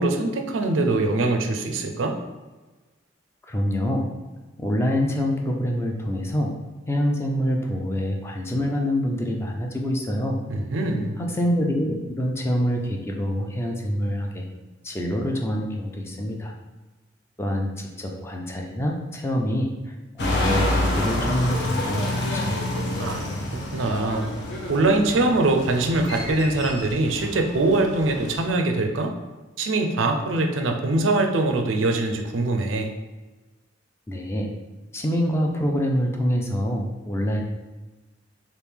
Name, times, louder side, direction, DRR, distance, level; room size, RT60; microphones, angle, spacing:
voice 1, 0.0-2.2 10.5-11.2 23.0-24.3 24.7-29.1 29.6-32.9, right 2 dB, 85° right, 4 dB, 0.5 m, -23 dB
voice 2, 3.5-4.1 4.6-6.5 6.9-10.4 11.2-14.5 14.8-16.5 17.4-17.7 18.0-19.7 20.2-22.6 34.1-34.5 34.9-37.4, equal, 15° left, 1 dB, 0.4 m, -25 dB
sound 1, 20.2-28.5, left 1 dB, 65° left, 0.7 m, -28 dB
3.4 x 2.5 x 3.4 m, 1.2 s
head